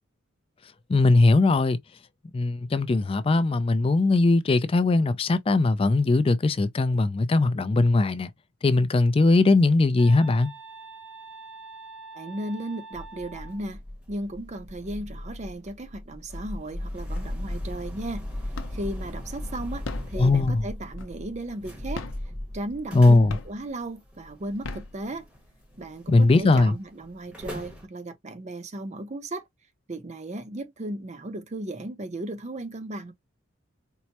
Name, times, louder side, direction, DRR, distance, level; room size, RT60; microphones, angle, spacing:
voice 1, 0.9-1.8 2.3-8.3 8.6-10.5 20.2-20.7 22.9-23.4 26.1-26.7, left 2 dB, 25° left, 0.3 m, -20 dB
sound 1, 10.0-13.6, right 3 dB, 85° right, 0.7 m, -44 dB
voice 2, 12.1-13.8 14.1-18.3 18.7-22.0 22.5-25.3 25.8-29.4 29.9-33.1, right 1 dB, 35° right, 0.6 m, -35 dB
sound 2, 12.9-26.1 26.3-26.7 27.1-27.9, left 1 dB, 5° right, 0.9 m, -37 dB
sound 3, 17.2-17.7 18.0-19.0 19.7-21.4 21.8-23.0 23.3-23.8 24.4-25.5 26.0-26.1 26.4-27.3, left 3 dB, 75° left, 0.6 m, -39 dB
4.5 x 2.0 x 2.8 m
head